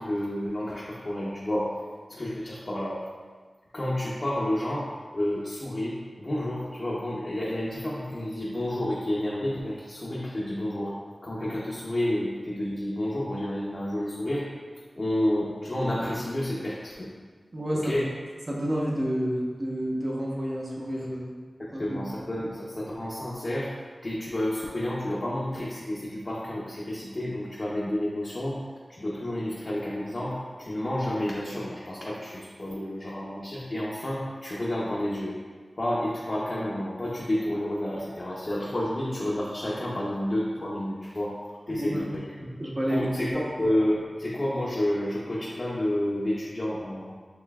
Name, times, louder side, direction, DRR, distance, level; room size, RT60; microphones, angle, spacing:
voice 1, 0.0-1.7 2.1-3.0 3.7-10.9 11.2-14.4 14.9-17.1 17.7-18.0 21.6-23.7 24.0-28.6 28.9-35.3 35.8-41.3 41.7-42.2 42.9-43.3 43.6-47.1, left 1 dB, 45° left, -8 dB, 0.8 m, -30 dB
voice 2, 17.5-18.0 18.5-21.3 21.7-22.0 41.7-42.1 42.6-43.4, equal, 40° right, -3 dB, 0.9 m, -29 dB
6.9 x 3.1 x 2.3 m, 1.5 s
wide cardioid pair, 75°, 0 cm